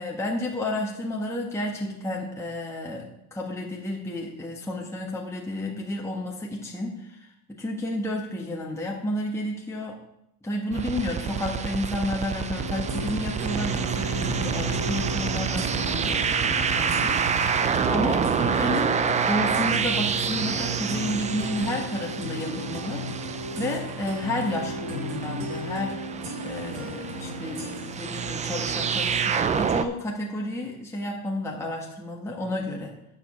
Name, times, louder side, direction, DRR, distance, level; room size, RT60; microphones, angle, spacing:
voice 1, 0.0-10.0 10.4-17.2 17.9-18.9 19.3-23.0 23.6-26.0 26.4-27.6 27.9-32.9, left 1 dB, 5° left, -2 dB, 1.5 m, -31 dB
sound 1, 10.7-29.8, right 6 dB, 15° right, 0.3 m, -28 dB
sound 2, 12.5-27.9, equal, 60° right, 3.5 m, -35 dB
9.1 x 5.4 x 6.8 m, 0.84 s
supercardioid pair, 105°, 49 cm